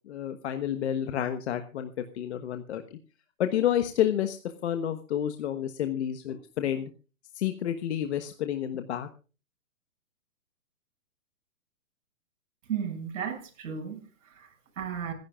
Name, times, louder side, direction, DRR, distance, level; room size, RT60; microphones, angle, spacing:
voice 1, 0.1-3.0 3.4-4.4 4.6-6.9 7.3-9.1, left 10 dB, 50° left, 8 dB, 1.2 m, -30 dB
voice 2, 12.7-15.1, right 8 dB, 55° right, 2 dB, 6.7 m, -35 dB
26.5 x 11.0 x 2.4 m, 0.35 s
hypercardioid pair, 150°, 43 cm